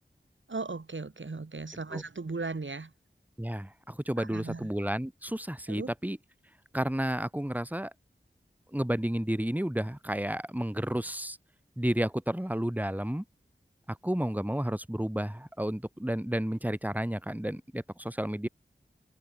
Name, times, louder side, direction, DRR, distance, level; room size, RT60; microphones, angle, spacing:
voice 1, 0.5-2.9 4.2-4.7 5.7-5.9, right 3 dB, 90° right, 4.7 m, -37 dB
voice 2, 3.4-6.2 6.7-7.9 8.7-11.4 11.8-13.2 13.9-18.5, right 1 dB, 10° right, 2.9 m, -31 dB
wide cardioid pair, 60°, 19 cm